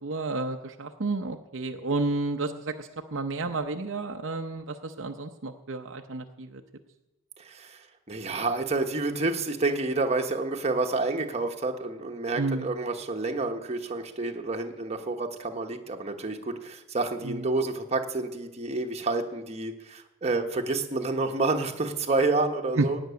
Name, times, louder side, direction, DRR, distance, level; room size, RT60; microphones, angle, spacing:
voice 1, 0.0-6.6 12.3-12.7 17.2-17.5 22.8-22.9, right 3 dB, 60° right, 4 dB, 0.7 m, -31 dB
voice 2, 7.4-7.8 8.1-23.0, right 3 dB, 30° right, 3 dB, 1.2 m, -29 dB
17.0 x 6.1 x 9.4 m, 1.0 s
head